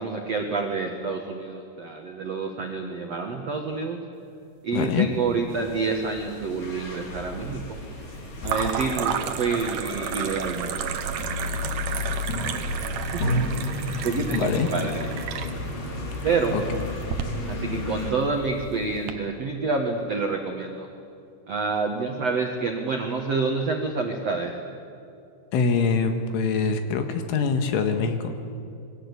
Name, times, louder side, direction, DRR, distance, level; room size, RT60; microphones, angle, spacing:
voice 1, 0.0-4.0 4.6-7.8 8.4-11.7 12.3-12.6 13.1-13.3 14.0-14.9 16.2-16.6 17.4-20.9 21.5-24.6, right 4 dB, 70° right, 2 dB, 1.5 m, -28 dB
voice 2, 4.7-5.1 14.3-14.7 16.1-16.6 25.5-28.3, left 5 dB, 75° left, 7 dB, 4.2 m, -24 dB
sound 1, 5.3-6.0 6.3-7.0 8.4-19.1, right 8 dB, 90° right, 1.8 m, -33 dB
sound 2, 5.5-18.1, left 1 dB, 45° left, 4.7 m, -32 dB
27.0 x 22.0 x 8.4 m, 2.6 s
omnidirectional pair, 5.9 m